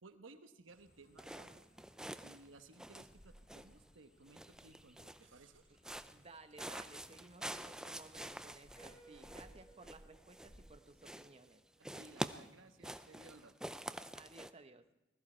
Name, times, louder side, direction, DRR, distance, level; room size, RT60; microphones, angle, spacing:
voice 1, 0.0-1.7 2.2-5.8 11.8-13.5, right 3 dB, 80° right, 9 dB, 1.1 m, -59 dB
sound 1, 0.7-10.8, equal, 70° left, 7.6 m, -66 dB
sound 2, 1.2-2.5 2.7-3.9 4.3-5.3 5.8-6.3 6.6-10.8 11.0-11.5 11.8-14.5, right 1 dB, 5° right, 0.4 m, -47 dB
voice 2, 6.1-11.6 14.2-14.8, right 3 dB, 30° right, 9 dB, 0.9 m, -57 dB
Piano, 8.8-12.5, right 4 dB, 25° left, 5.7 m, -64 dB
20.5 x 14.0 x 4.4 m, 1.1 s
head